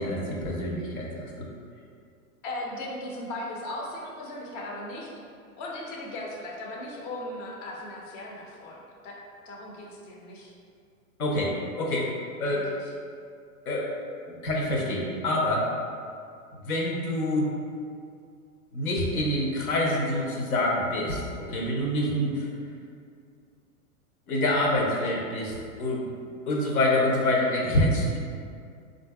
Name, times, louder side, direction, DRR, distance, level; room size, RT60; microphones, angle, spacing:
voice 1, 0.0-1.5 11.2-12.1 12.4-12.7 13.7-13.9 14.3-15.7 16.5-17.5 18.7-22.5 24.3-26.1 26.5-28.2, left 1 dB, 75° left, -2 dB, 0.9 m, -26 dB
voice 2, 2.4-5.1 5.6-9.2 9.5-10.5 12.5-12.9, left 1 dB, 30° left, -2 dB, 0.5 m, -37 dB
3.9 x 2.6 x 2.2 m, 2.3 s
hypercardioid pair, 115°, 44 cm